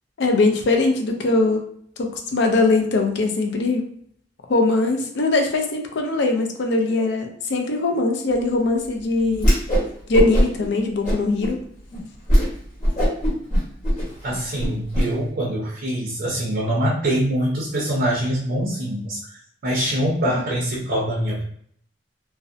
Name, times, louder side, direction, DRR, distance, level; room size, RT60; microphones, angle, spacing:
voice 1, 0.2-1.6 2.0-3.8 4.5-9.5 10.1-11.6, left 3 dB, 65° left, 4 dB, 0.4 m, -21 dB
Whoosh swoosh swish, 9.3-9.9 10.1-10.7 11.0-11.5 11.9-12.0 12.3-12.5 12.8-15.1, equal, 40° left, 1.3 m, -19 dB
voice 2, 14.2-19.2 19.6-21.4, right 1 dB, 55° right, -4 dB, 0.5 m, -24 dB
2.6 x 2.0 x 2.4 m, 0.64 s
head